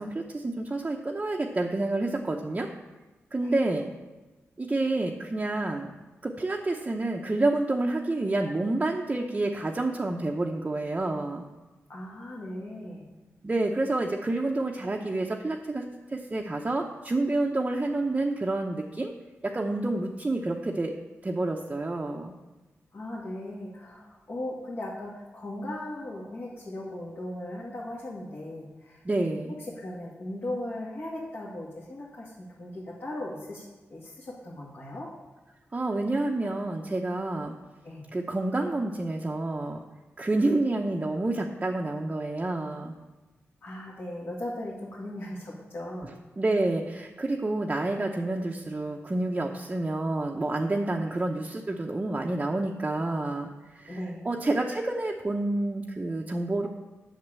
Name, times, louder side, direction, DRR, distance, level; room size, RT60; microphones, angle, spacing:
voice 1, 0.0-2.7 3.3-3.9 4.6-5.9 6.2-11.4 13.4-19.1 19.4-20.9 21.2-22.3 29.0-29.5 35.7-37.5 38.1-39.8 40.2-42.9 46.0-56.7, right 2 dB, 25° right, 0 dB, 0.8 m, -29 dB
voice 2, 11.9-13.0 22.9-29.0 29.7-33.6 33.9-35.1 37.8-38.1 43.6-46.1 50.9-51.1 53.9-54.3, left 1 dB, 55° left, -5 dB, 2.1 m, -38 dB
7.8 x 6.6 x 7.4 m, 1.2 s
wide cardioid pair, 90°, 5 cm